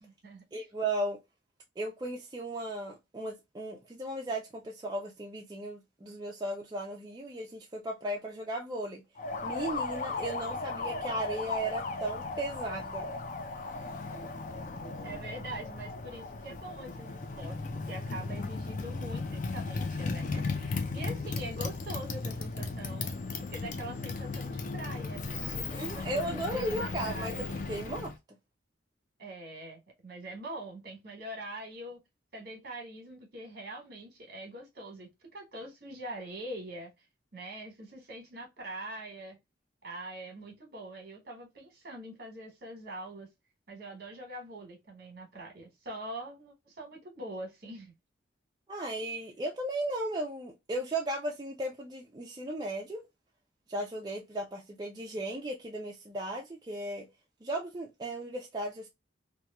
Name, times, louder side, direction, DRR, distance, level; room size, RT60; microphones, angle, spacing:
voice 1, 0.0-0.4 14.1-14.3 14.8-23.1 23.5-27.4 29.2-32.0 32.3-37.0 37.3-39.4 39.8-43.3 43.7-47.9, right 1 dB, 55° right, 1.1 m, -43 dB
voice 2, 0.5-1.2 1.8-9.0 9.4-13.1 25.7-28.1 48.7-53.0 53.7-57.1 57.4-58.9, right 1 dB, 20° right, 0.3 m, -36 dB
Motorcycle, 9.2-28.2, left 3 dB, 45° left, 0.4 m, -36 dB
3.0 x 2.2 x 2.2 m
head